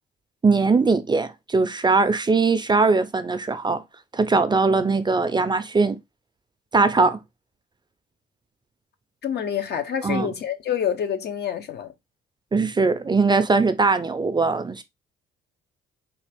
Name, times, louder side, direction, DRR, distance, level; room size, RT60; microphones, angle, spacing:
voice 1, 0.4-3.8 4.1-6.0 6.7-7.2 10.0-10.3 12.5-14.8, right 4 dB, 20° right, 0.4 m, -20 dB
voice 2, 9.2-11.9, left 8 dB, 55° left, 0.8 m, -27 dB
3.9 x 2.4 x 3.3 m
cardioid pair, 90°, 20 cm